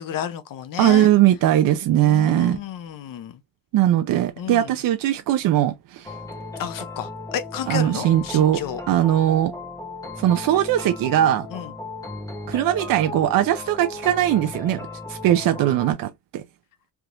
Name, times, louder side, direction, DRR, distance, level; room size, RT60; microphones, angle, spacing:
voice 1, 0.0-1.1 2.0-3.4 4.4-4.7 6.6-8.8 11.5-11.7, left 10 dB, 70° left, 0.7 m, -31 dB
voice 2, 0.8-2.6 3.7-6.1 7.7-8.6 8.9-9.5 10.2-11.5 12.5-14.8 15.1-16.4, right 12 dB, 75° right, 0.5 m, -20 dB
sound 1, 6.0-15.9, left 3 dB, 10° left, 0.9 m, -36 dB
3.4 x 2.9 x 2.5 m
cardioid pair, 135°, 34 cm